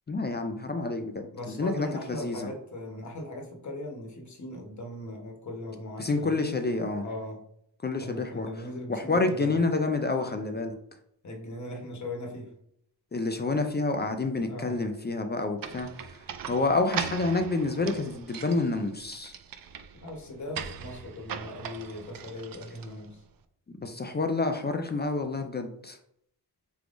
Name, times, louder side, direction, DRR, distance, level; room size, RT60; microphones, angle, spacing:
voice 1, 0.1-1.1 1.5-2.5 6.0-7.0 7.8-8.5 8.9-10.7 13.1-16.2 16.5-19.3 23.8-26.0, left 3 dB, 25° left, 6 dB, 0.4 m, -28 dB
voice 2, 1.3-6.4 7.0-7.4 8.0-9.6 11.2-12.5 14.5-14.9 19.9-23.2, left 1 dB, 45° left, 1 dB, 1.1 m, -39 dB
sound 1, 15.6-23.2, right 7 dB, 55° right, 0.4 m, -40 dB
4.6 x 3.5 x 2.5 m, 0.70 s
wide cardioid pair, 120°, 41 cm